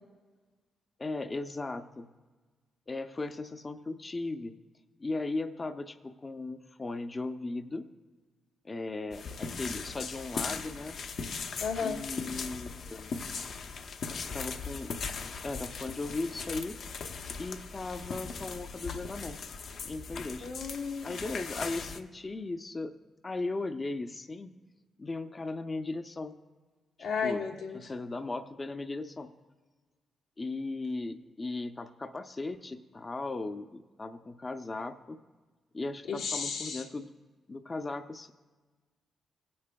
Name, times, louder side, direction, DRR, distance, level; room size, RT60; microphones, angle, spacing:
voice 1, 1.0-2.1 2.9-4.5 5.0-7.9 8.6-11.0 11.8-13.1 14.3-14.9 15.4-16.8 17.4-19.4 19.8-20.5 21.0-22.9 23.2-24.5 25.0-26.4 27.0-27.4 27.7-29.3 30.4-35.2 35.7-37.1 37.5-38.3, left 3 dB, 30° left, 7 dB, 0.5 m, -37 dB
sound 1, 9.1-22.0, left 5 dB, 70° left, 0.7 m, -39 dB
voice 2, 11.6-12.0 20.4-21.1 27.0-27.8 36.1-36.8, left 5 dB, 85° left, -2 dB, 1.4 m, -33 dB
19.5 x 8.5 x 2.3 m, 1.3 s
supercardioid pair, 65°, 0 cm